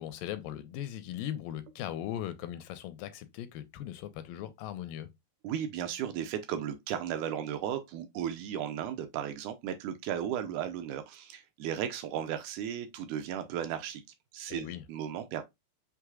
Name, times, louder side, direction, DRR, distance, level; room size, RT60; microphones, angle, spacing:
voice 1, 0.0-5.1 14.5-14.8, left 11 dB, 85° left, 2.3 m, -39 dB
voice 2, 5.4-14.0 14.3-15.4, right 9 dB, 80° right, 2.0 m, -35 dB
6.1 x 3.2 x 2.2 m
omnidirectional pair, 3.9 m